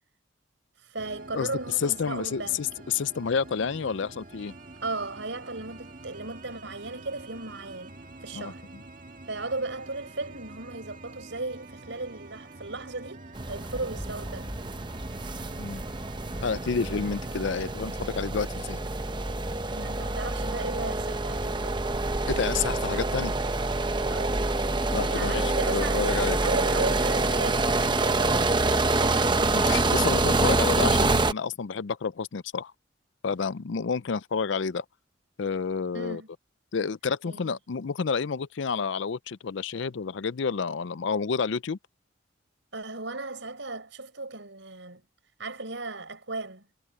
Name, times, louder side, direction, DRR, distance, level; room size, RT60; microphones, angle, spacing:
voice 1, 0.9-2.6 4.8-8.0 8.2-8.6 9.3-14.5 19.7-21.8 24.1-24.4 25.0-29.2 35.9-36.3 37.2-37.5 42.7-45.0 45.4-46.6, right 3 dB, 70° right, 5.0 m, -36 dB
sound 1, 1.0-17.7, right 2 dB, 45° right, 1.9 m, -47 dB
voice 2, 1.8-4.5 8.3-8.8 15.6-15.8 16.4-18.8 22.3-23.4 24.9-26.4 29.5-32.7 33.2-34.8 35.4-36.2 36.7-41.8, left 5 dB, 70° left, 0.5 m, -29 dB
sound 2, 13.3-31.3, right 2 dB, 25° right, 0.8 m, -26 dB
sound 3, 13.5-20.3, equal, 5° right, 7.5 m, -46 dB
head